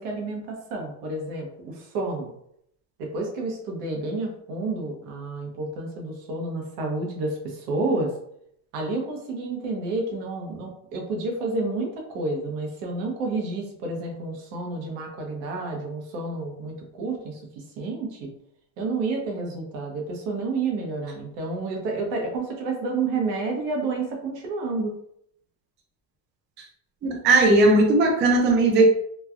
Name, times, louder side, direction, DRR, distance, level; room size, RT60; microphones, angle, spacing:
voice 1, 0.0-2.3 3.0-8.1 8.7-18.3 18.8-24.9, right 3 dB, 85° right, 1 dB, 1.1 m, -30 dB
voice 2, 27.0-28.9, right 2 dB, 25° right, 0 dB, 0.4 m, -18 dB
3.1 x 2.3 x 2.4 m, 0.71 s
cardioid pair, 140°, 47 cm